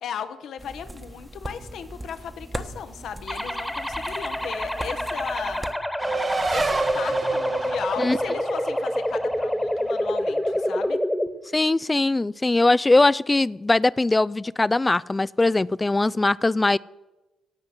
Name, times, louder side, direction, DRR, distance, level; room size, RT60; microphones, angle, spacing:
voice 1, 0.0-5.7 6.5-11.0, left 7 dB, 65° left, 10 dB, 0.9 m, -36 dB
sound 1, 0.6-5.7, right 1 dB, 20° right, 1.2 m, -39 dB
sound 2, 3.3-11.3, left 1 dB, 5° left, 1.4 m, -27 dB
Race car auto racing, 6.0-10.9, right 3 dB, 40° right, 2.1 m, -29 dB
voice 2, 11.5-16.8, left 2 dB, 25° left, 21 dB, 0.4 m, -21 dB
17.0 x 5.8 x 7.9 m, 1.1 s
hypercardioid pair, 45°, 0 cm